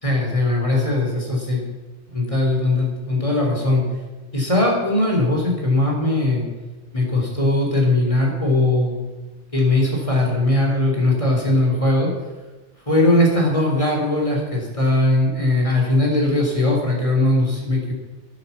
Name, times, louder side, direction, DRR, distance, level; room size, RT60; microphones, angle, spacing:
voice 1, 0.0-1.6 2.1-3.9 4.3-6.5 6.9-9.0 9.5-12.1 12.9-17.9, left 1 dB, 25° left, -1 dB, 3.8 m, -19 dB
11.5 x 10.5 x 7.3 m, 1.2 s
omnidirectional pair, 1.2 m